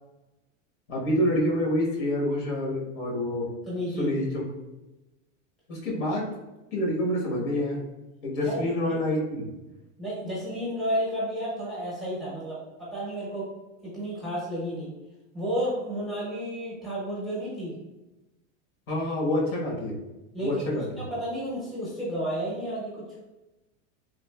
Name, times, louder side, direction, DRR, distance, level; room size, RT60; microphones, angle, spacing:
voice 1, 0.9-3.5 4.0-4.4 5.7-6.2 6.7-7.8 8.2-9.5 18.9-20.0 20.4-20.9, left 1 dB, 75° left, -2 dB, 1.1 m, -27 dB
voice 2, 3.7-4.1 8.4-8.7 10.0-13.5 13.8-14.9 15.3-17.7 20.3-23.1, equal, ahead, -7 dB, 0.7 m, -32 dB
3.2 x 2.4 x 2.2 m, 1.0 s
supercardioid pair, 150°, 38 cm